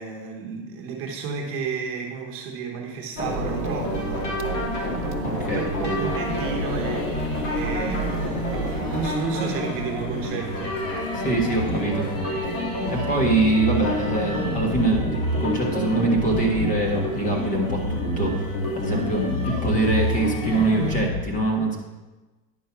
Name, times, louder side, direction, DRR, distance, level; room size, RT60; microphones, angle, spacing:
voice 1, 0.0-4.3 5.3-10.8, right 5 dB, 35° right, 1 dB, 1.1 m, -32 dB
sound 1, 3.2-21.2, left 1 dB, 80° left, 3.0 m, -28 dB
sound 2, 3.2-9.1, right 10 dB, 60° right, 1.0 m, -35 dB
voice 2, 5.2-6.0 11.1-12.1 12.5-12.6 12.9-21.8, right 2 dB, 20° left, 1 dB, 1.4 m, -24 dB
sound 3, 5.9-21.0, equal, 50° left, 2.5 m, -38 dB
10.0 x 5.3 x 5.9 m, 1.1 s
supercardioid pair, 170°, 37 cm